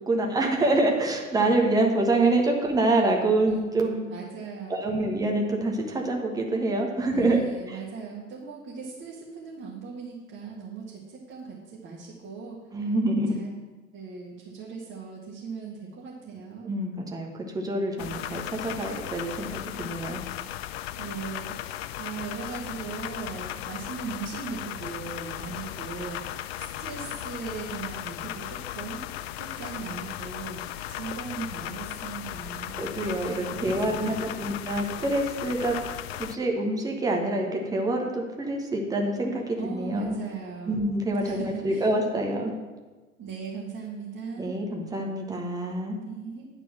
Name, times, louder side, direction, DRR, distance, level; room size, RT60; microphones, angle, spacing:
voice 1, 0.1-4.0 4.7-7.8 12.7-13.3 16.6-20.2 32.8-35.7 36.1-40.1 40.7-42.5 44.4-46.0, right 2 dB, 10° right, 0 dB, 1.3 m, -26 dB
voice 2, 4.1-5.1 7.1-12.6 13.3-13.5 13.9-16.8 21.0-29.1 29.3-30.6 30.9-32.7 33.6-34.6 39.6-41.0 41.2-41.9 43.2-44.5 46.0-46.5, right 5 dB, 30° right, -5 dB, 1.8 m, -38 dB
sound 1, 18.0-36.4, left 13 dB, 50° left, 0.4 m, -36 dB
9.5 x 4.4 x 7.5 m, 1.3 s
figure-of-eight pair, 85°, 40 cm